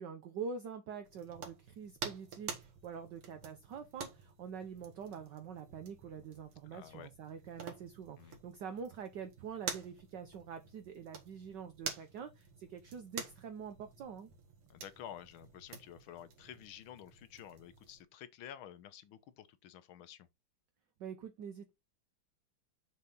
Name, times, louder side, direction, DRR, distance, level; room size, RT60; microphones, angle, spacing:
voice 1, 0.0-14.3 21.0-21.7, right 6 dB, 65° right, 1.3 m, -45 dB
sound 1, 1.0-18.0, right 6 dB, 80° right, 2.5 m, -49 dB
voice 2, 6.6-7.1 8.2-8.4 14.7-20.3, left 10 dB, 75° left, 1.6 m, -51 dB
6.5 x 4.2 x 5.4 m
omnidirectional pair, 2.4 m